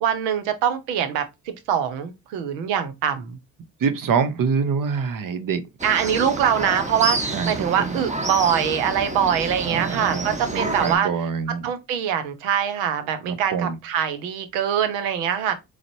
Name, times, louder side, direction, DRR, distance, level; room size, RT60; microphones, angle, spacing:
voice 1, 0.0-3.4 5.8-11.1 11.6-15.5, right 8 dB, 85° right, 0.8 m, -23 dB
voice 2, 3.8-5.6 6.0-6.1 7.3-8.0 9.6-11.7 13.3-13.8, right 6 dB, 50° right, 0.8 m, -25 dB
sound 1, 5.8-11.0, right 2 dB, 15° right, 0.9 m, -29 dB
3.9 x 3.1 x 3.0 m
hypercardioid pair, 55°, 43 cm